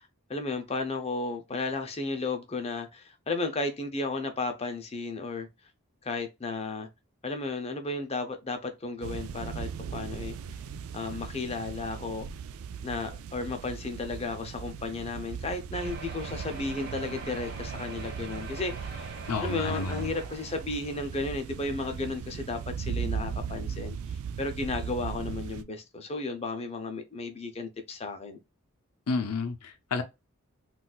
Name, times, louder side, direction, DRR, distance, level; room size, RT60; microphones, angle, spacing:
voice 1, 0.0-5.5 6.0-6.9 7.2-10.3 10.9-12.3 12.8-28.4, left 3 dB, 30° left, 0.5 m, -34 dB
sound 1, 9.0-25.6, right 6 dB, 70° right, 0.3 m, -38 dB
sound 2, 15.7-21.2 21.8-21.9 22.2-22.3 22.6-22.7, right 3 dB, 45° right, 1.4 m, -44 dB
voice 2, 19.3-20.1 29.1-30.0, left 3 dB, 85° left, 0.5 m, -30 dB
3.9 x 2.4 x 2.3 m
head